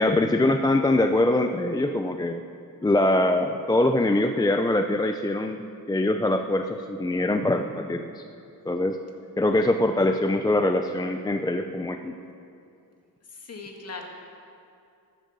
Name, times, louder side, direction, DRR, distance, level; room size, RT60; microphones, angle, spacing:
voice 1, 0.0-2.5 2.8-5.6 5.9-8.2 8.7-9.0 9.4-12.2, left 1 dB, 10° left, 6 dB, 0.4 m, -23 dB
voice 2, 13.3-14.1, left 4 dB, 40° left, 2 dB, 2.0 m, -39 dB
14.0 x 10.0 x 6.8 m, 2.5 s
cardioid pair, 115°, 37 cm